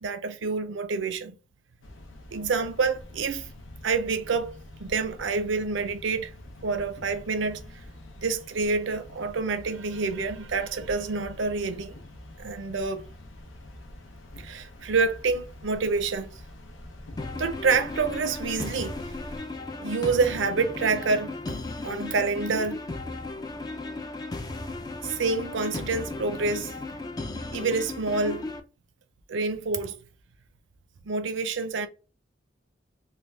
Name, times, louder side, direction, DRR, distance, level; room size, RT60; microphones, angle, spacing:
voice 1, 0.0-1.3 2.3-3.5 3.8-6.3 6.6-7.6 8.2-11.9 12.4-13.0 14.4-16.3 17.4-19.1 19.8-21.3 21.8-22.8 25.0-26.8 27.5-28.5 29.3-30.0 31.0-31.9, right 4 dB, 75° right, 0.5 m, -27 dB
sound 1, 1.8-19.4, left 1 dB, 85° left, 0.7 m, -46 dB
sound 2, 17.2-28.6, left 2 dB, 20° left, 0.3 m, -35 dB
3.3 x 2.2 x 3.3 m
head